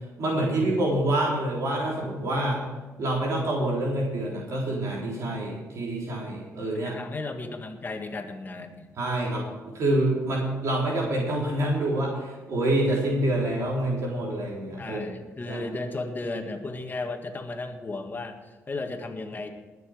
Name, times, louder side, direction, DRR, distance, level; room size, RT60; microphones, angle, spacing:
voice 1, 0.2-2.6 3.0-6.9 9.0-9.5 9.7-15.0 15.5-15.6, right 1 dB, 60° right, -3 dB, 3.8 m, -26 dB
voice 2, 6.9-8.9 14.8-19.5, left 3 dB, 35° left, 5 dB, 1.8 m, -34 dB
19.5 x 7.1 x 5.1 m, 1.2 s
cardioid pair, 75°, 6 cm